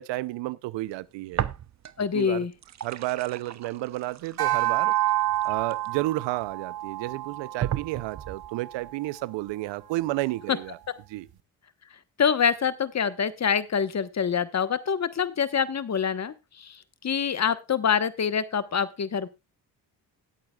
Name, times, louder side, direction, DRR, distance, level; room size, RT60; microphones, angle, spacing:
voice 1, 0.0-1.4 2.1-2.5 2.8-4.9 5.4-10.8 11.1-11.3, right 18 dB, 80° right, 0.6 m, -31 dB
sound 1, 1.3-2.1 2.4-6.4 7.0-7.1 7.6-8.5, right 10 dB, 40° right, 0.7 m, -35 dB
voice 2, 2.0-2.5 12.2-19.3, left 7 dB, 40° left, 1.1 m, -26 dB
sound 2, 4.4-9.0, right 15 dB, 60° right, 1.2 m, -29 dB
18.5 x 8.6 x 2.3 m
supercardioid pair, 65°, 43 cm